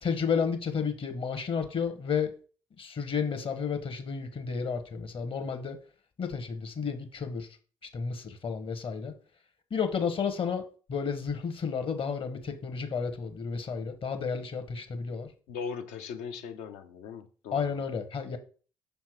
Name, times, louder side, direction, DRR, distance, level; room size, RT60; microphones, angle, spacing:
voice 1, 0.0-2.3 2.8-5.8 6.2-7.5 7.9-9.1 9.7-10.6 10.9-15.3 17.5-18.4, left 6 dB, 45° left, 1.1 m, -32 dB
voice 2, 15.5-17.8, left 6 dB, 70° left, 0.7 m, -39 dB
5.8 x 3.5 x 4.6 m
figure-of-eight pair, 45°, 12 cm